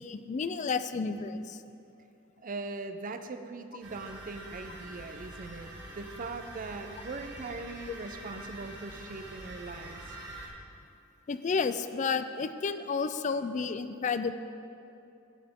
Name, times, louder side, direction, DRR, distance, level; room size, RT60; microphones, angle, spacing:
voice 1, 0.0-1.6 11.3-14.3, left 5 dB, 35° left, 11 dB, 0.4 m, -31 dB
voice 2, 2.4-10.1, right 3 dB, 40° right, 8 dB, 0.5 m, -40 dB
sound 1, 3.8-10.5, right 1 dB, 60° right, 1.8 m, -45 dB
16.5 x 5.8 x 3.6 m, 2.7 s
head